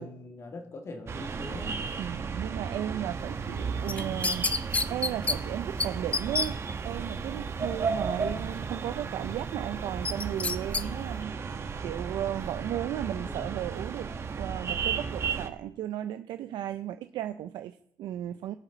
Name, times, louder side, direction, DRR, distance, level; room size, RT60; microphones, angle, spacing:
voice 1, 0.0-1.9 3.9-4.2 8.2-8.5 13.1-13.6, left 2 dB, 35° left, 4 dB, 2.0 m, -43 dB
sound 1, 1.1-15.5, right 5 dB, 35° right, 1.0 m, -34 dB
voice 2, 2.0-11.4 11.8-14.1 14.4-18.5, right 11 dB, 85° right, 10 dB, 0.5 m, -35 dB
sound 2, 3.9-5.4 5.8-5.9 6.1-6.5 10.0-10.8 11.2-11.3, left 3 dB, 20° left, 0.5 m, -28 dB
21.0 x 7.3 x 4.0 m, 0.68 s
cardioid pair, 145°, 8 cm